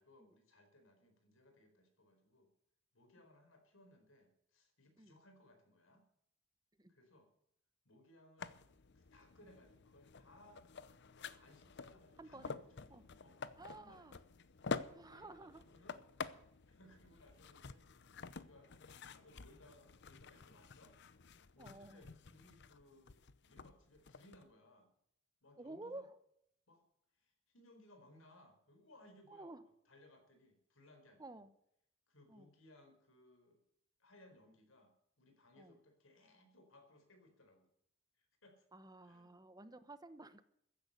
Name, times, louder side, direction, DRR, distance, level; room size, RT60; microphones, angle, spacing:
voice 1, 0.0-2.5 2.9-6.0 6.9-7.3 7.8-8.6 8.9-10.6 11.0-13.4 13.7-14.1 14.8-16.0 16.7-21.0 21.5-24.9 25.4-26.1 26.7-26.8 27.1-31.5 32.1-33.6 34.0-37.7 38.1-38.6 39.0-39.4, left 1 dB, 90° left, 6 dB, 4.6 m, -65 dB
sound 1, 8.4-24.4, left 4 dB, 60° left, 0.8 m, -49 dB
voice 2, 12.2-12.5 12.9-13.0 13.6-14.2 14.9-15.6 21.6-22.0 25.6-26.1 29.3-29.6 31.2-31.5 32.3-32.5 35.6-35.8 38.7-40.4, right 2 dB, 20° right, 12 dB, 1.0 m, -52 dB
15.0 x 10.5 x 6.7 m, 0.72 s
head